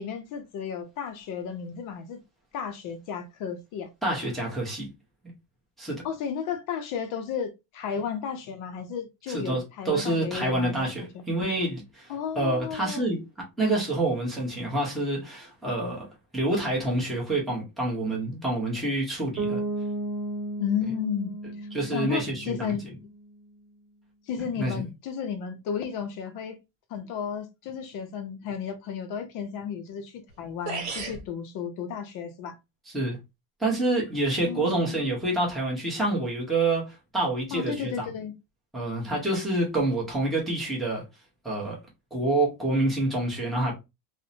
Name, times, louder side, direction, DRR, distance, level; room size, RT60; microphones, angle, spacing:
voice 1, 0.0-2.2 2.5-3.9 6.0-11.2 12.1-13.1 20.6-21.3 21.9-22.8 24.3-26.6 26.9-32.6 34.4-35.1 37.5-38.3, left 7 dB, 45° left, 0.4 m, -33 dB
voice 2, 4.0-4.9 5.8-6.0 9.3-13.2 13.6-16.1 16.3-19.6 21.7-22.7 24.4-24.9 32.9-33.2 33.6-38.1 38.7-41.0 41.4-41.8 42.1-43.7, right 2 dB, ahead, 0.7 m, -27 dB
Bass guitar, 19.4-23.2, right 2 dB, 85° right, 0.8 m, -34 dB
sound 1, 30.3-30.4 30.7-31.2, right 4 dB, 50° right, 1.0 m, -33 dB
2.6 x 2.1 x 2.5 m
cardioid pair, 140°, 49 cm